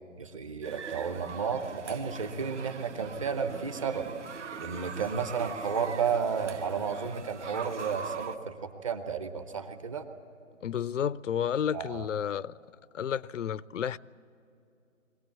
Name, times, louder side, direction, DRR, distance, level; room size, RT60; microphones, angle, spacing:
voice 1, 0.2-4.1 4.6-10.1 11.7-12.1, right 6 dB, 25° right, 0.9 m, -32 dB
sound 1, 0.6-8.4, right 5 dB, 60° right, 1.5 m, -42 dB
voice 2, 10.6-12.5 12.9-14.0, left 8 dB, 65° left, 0.6 m, -31 dB
22.5 x 18.0 x 8.5 m
figure-of-eight pair, 155°, 40 cm